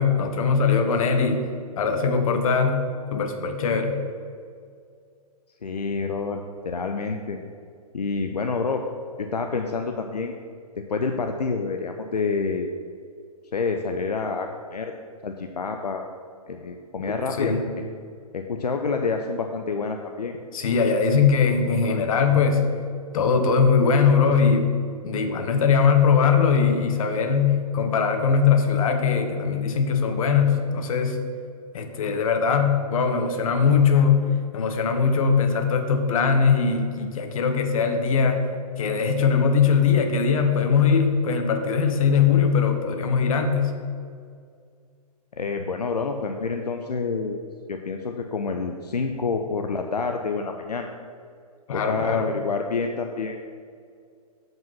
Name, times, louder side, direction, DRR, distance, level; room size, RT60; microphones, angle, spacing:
voice 1, 0.0-1.5 1.8-2.8 3.1-4.0 17.4-17.7 20.5-22.7 23.1-24.8 25.0-31.2 31.7-38.5 38.8-43.8 51.7-52.3, left 6 dB, 60° left, 6 dB, 1.0 m, -21 dB
voice 2, 5.6-7.4 7.9-8.8 9.2-10.4 10.9-12.7 13.5-14.9 15.2-16.0 16.5-17.5 18.3-20.4 45.4-47.4 47.7-50.9 51.7-53.4, left 4 dB, 90° left, 4 dB, 0.6 m, -28 dB
7.3 x 5.3 x 5.5 m, 2.2 s
hypercardioid pair, 120°, 20 cm